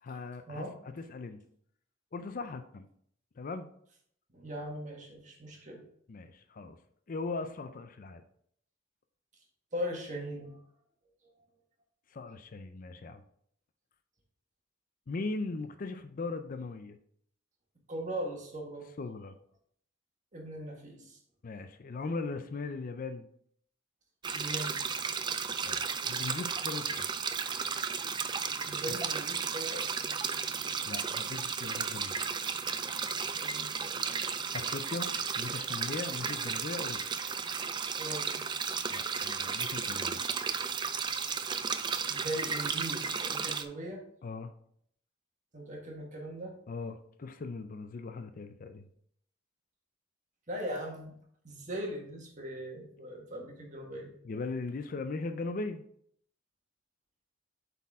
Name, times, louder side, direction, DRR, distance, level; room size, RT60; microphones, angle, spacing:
voice 1, 0.0-1.4 2.1-2.9 3.4-3.7 6.1-6.8 7.1-8.2 12.1-13.2 15.1-17.0 19.0-19.3 21.4-23.3 25.6-27.1 28.9-29.0 30.9-32.2 34.5-37.0 38.9-40.2 44.2-44.5 46.7-48.9 54.2-55.8, left 3 dB, 45° left, 9 dB, 0.4 m, -39 dB
voice 2, 4.3-5.8 9.7-10.6 17.9-18.9 20.3-21.2 24.3-24.8 28.6-30.1 33.3-34.3 38.0-38.4 42.1-44.0 45.5-46.6 50.5-51.2 51.4-54.1, equal, 40° right, 0 dB, 1.5 m, -39 dB
sound 1, 24.2-43.6, right 6 dB, 20° right, 0.3 m, -34 dB
8.1 x 4.2 x 3.6 m, 0.66 s
head